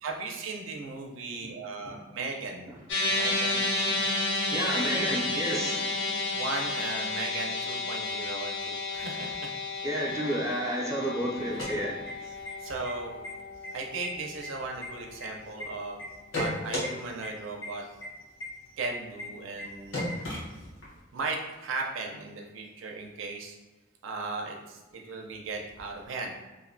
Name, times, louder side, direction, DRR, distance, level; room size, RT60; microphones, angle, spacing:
voice 1, 0.0-2.7 3.1-3.7 6.3-9.5 12.3-13.2 13.7-16.0 16.3-17.9 18.7-20.1 21.1-23.6 24.0-26.4, right 3 dB, 85° right, 1 dB, 0.4 m, -37 dB
sound 1, 2.9-15.3, left 2 dB, 70° left, 0.5 m, -32 dB
voice 2, 4.5-5.9 9.8-12.0, right 1 dB, 15° right, -3 dB, 0.3 m, -31 dB
sound 2, 11.4-12.5 12.8-12.9 13.2-13.7 14.0-15.6 16.0-16.9 17.2-17.3 17.6-17.7 18.0-18.1 18.4-18.5 18.8-18.9 19.2-19.3 19.6-19.7 19.9-21.0, left 1 dB, 85° left, 0.9 m, -34 dB
2.5 x 2.1 x 2.5 m, 1.1 s
head